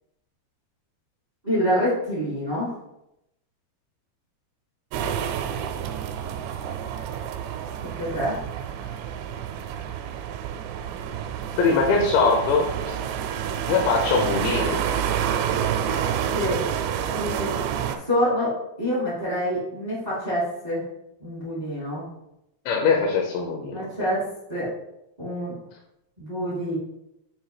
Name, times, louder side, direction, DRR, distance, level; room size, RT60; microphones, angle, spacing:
voice 1, 1.4-2.7 7.8-8.4 16.3-16.6 17.1-17.6 17.9-18.5 18.8-20.8 21.2-22.0 23.7-24.2 24.5-24.7 25.2-25.5 26.2-26.8, equal, 55° right, -8 dB, 0.4 m, -26 dB
sound 1, 4.9-18.0, right 9 dB, 85° right, 2.7 m, -29 dB
voice 2, 11.6-13.0 13.7-14.9 22.7-23.9, left 4 dB, 80° left, 0 dB, 3.0 m, -22 dB
7.2 x 2.7 x 4.9 m, 0.84 s
omnidirectional pair, 5.2 m